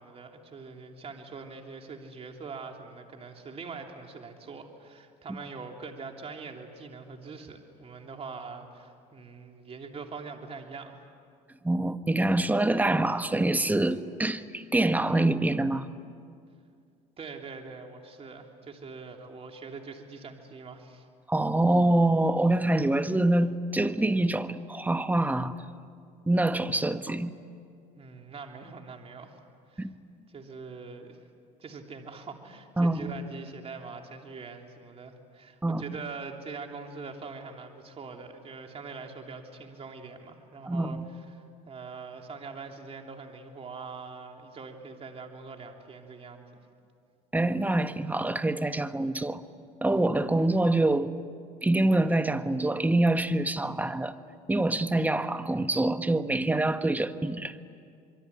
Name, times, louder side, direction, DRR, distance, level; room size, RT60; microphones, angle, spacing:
voice 1, 0.0-11.0 17.2-21.0 27.9-29.4 29.7-29.9 30.3-31.2 31.6-41.0 41.3-46.5, right 4 dB, 35° right, 3 dB, 3.3 m, -43 dB
voice 2, 11.6-15.9 21.3-25.6 26.3-27.3 29.8-29.9 32.8-33.1 35.6-35.8 40.6-41.1 47.3-49.4 49.8-51.1 51.6-54.1 54.5-57.6, right 2 dB, 10° right, 10 dB, 1.3 m, -25 dB
26.5 x 23.0 x 9.8 m, 2.3 s
supercardioid pair, 90°, 17 cm